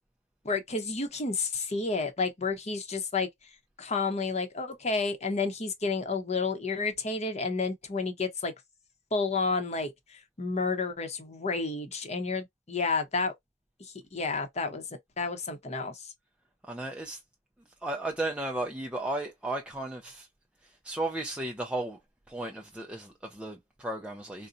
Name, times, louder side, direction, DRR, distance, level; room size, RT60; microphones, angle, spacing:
voice 1, 0.4-3.3 3.8-8.5 9.1-13.3 13.8-14.8 15.2-16.1, left 4 dB, 35° left, 0.8 m, -31 dB
voice 2, 16.7-17.2 17.8-20.3 20.6-22.0 22.3-24.5, right 2 dB, 5° right, 0.4 m, -34 dB
3.8 x 2.1 x 2.5 m
head